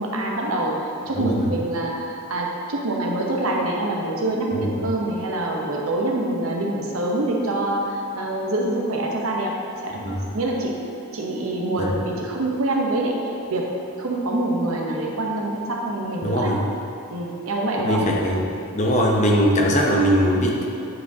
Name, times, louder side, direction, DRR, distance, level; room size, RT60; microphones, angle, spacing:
voice 1, 0.0-9.6 9.8-10.8 11.1-13.2 13.5-16.5 17.1-18.0, right 1 dB, 75° right, -1 dB, 0.9 m, -25 dB
voice 2, 16.2-16.6 17.8-18.4 18.7-20.6, equal, 30° left, -1 dB, 0.8 m, -20 dB
9.6 x 4.7 x 2.8 m, 2.6 s
head